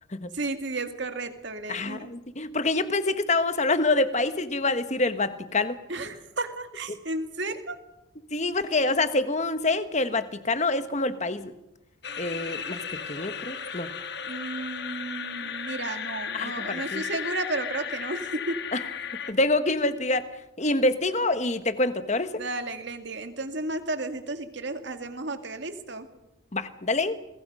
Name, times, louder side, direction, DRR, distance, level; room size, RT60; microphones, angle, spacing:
voice 1, 0.3-2.1 5.9-7.8 14.2-18.7 22.4-26.1, right 2 dB, 60° right, 8 dB, 2.2 m, -33 dB
voice 2, 1.7-5.8 8.3-11.5 12.2-12.8 13.1-13.9 16.3-17.0 18.7-18.8 19.3-20.3 20.6-22.4 26.5-27.2, left 2 dB, 35° left, 11 dB, 1.3 m, -26 dB
sound 1, 12.0-19.3, left 7 dB, 55° left, 1.5 m, -35 dB
29.0 x 22.0 x 5.6 m, 0.91 s
head